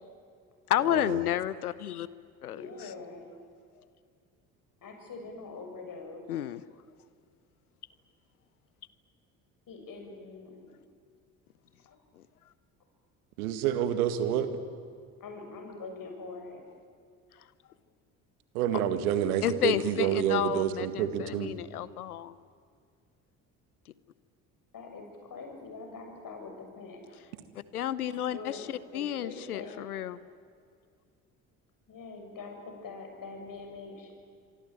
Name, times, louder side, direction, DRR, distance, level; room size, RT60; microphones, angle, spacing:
voice 1, 0.7-2.1 2.4-2.9 6.3-6.6 12.2-12.3 19.4-22.3 27.7-30.2, left 11 dB, 90° left, 18 dB, 0.8 m, -31 dB
voice 2, 2.5-3.2 4.8-6.2 9.7-10.8 15.2-16.6 24.7-27.0 28.2-29.8 31.9-34.1, left 4 dB, 50° left, 4 dB, 7.3 m, -43 dB
voice 3, 13.4-14.5 18.5-21.5, right 10 dB, 80° right, 10 dB, 2.0 m, -28 dB
26.0 x 24.0 x 9.0 m, 2.2 s
hypercardioid pair, 55°, 43 cm